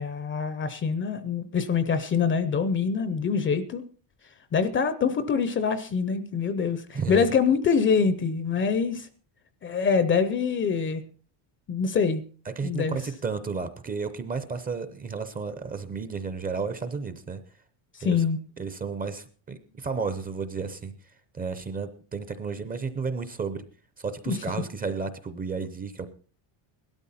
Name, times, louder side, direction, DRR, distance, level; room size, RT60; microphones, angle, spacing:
voice 1, 0.0-3.9 4.5-9.1 9.6-11.0 11.7-12.2 12.6-13.0 18.0-18.4 24.3-24.4, left 6 dB, 25° left, 13 dB, 0.6 m, -25 dB
voice 2, 12.5-17.4 18.0-18.2 18.6-20.9 21.3-23.6 24.0-26.1, right 5 dB, 20° right, 11 dB, 0.6 m, -32 dB
17.0 x 12.5 x 4.2 m, 0.38 s
cardioid pair, 170°, 50 cm